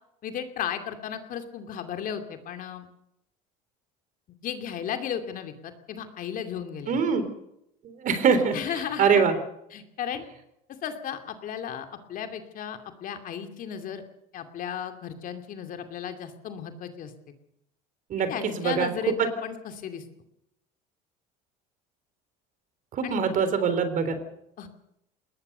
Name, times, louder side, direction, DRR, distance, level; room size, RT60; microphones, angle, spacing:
voice 1, 0.2-2.9 4.4-7.0 8.5-9.1 9.7-10.3 10.8-14.0 14.3-17.1 18.3-19.1 19.4-20.0 23.0-23.2 24.6-24.7, left 8 dB, 50° left, 7 dB, 2.5 m, -34 dB
voice 2, 6.9-7.2 8.0-8.6 9.0-9.3 18.1-18.3 18.6-18.9 19.2-19.3 22.9-24.2, right 6 dB, 50° right, 11 dB, 3.6 m, -23 dB
21.0 x 19.5 x 6.8 m, 0.82 s
supercardioid pair, 105°, 18 cm